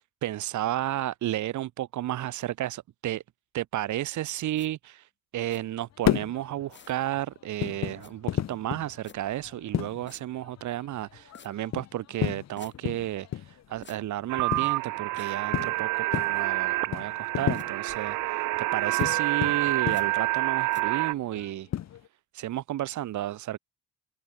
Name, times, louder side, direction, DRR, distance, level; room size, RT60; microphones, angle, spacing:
voice 1, 0.0-3.2 3.5-18.5 18.7-21.7 22.3-23.6, right 13 dB, 75° right, 1.3 m, -32 dB
sound 1, 4.5-4.7 5.5-5.6 6.7-7.0 8.0-8.1 9.0-9.2 10.1-10.2 11.3-11.5 12.6-12.7 13.8-14.0 15.2-15.4 16.1-16.5 17.5-17.7 18.9-19.1 19.9-20.1 20.7-20.8, left 5 dB, 40° left, 7.6 m, -50 dB
sound 2, 5.9-22.1, left 11 dB, 60° left, 1.4 m, -34 dB
sound 3, 14.3-21.1, right 21 dB, 90° right, 0.5 m, -28 dB
cardioid pair, 90°, 30 cm